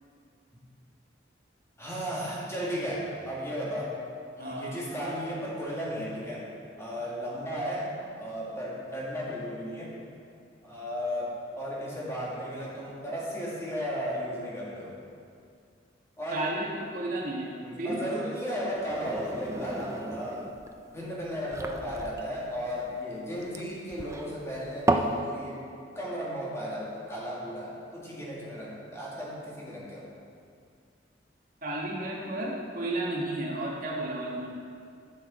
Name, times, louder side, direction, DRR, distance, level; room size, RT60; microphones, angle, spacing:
voice 1, 1.8-4.0 4.4-6.5 6.8-9.9 10.6-15.0 16.2-16.5 17.6-20.5 20.9-25.6 26.0-30.1, equal, 15° left, -6 dB, 1.9 m, -35 dB
voice 2, 4.4-4.8 16.3-18.0 31.6-34.5, right 2 dB, 50° right, -4 dB, 1.7 m, -33 dB
sound 1, 18.7-25.2, right 2 dB, 15° right, 0.4 m, -33 dB
11.0 x 6.4 x 4.3 m, 2.3 s
head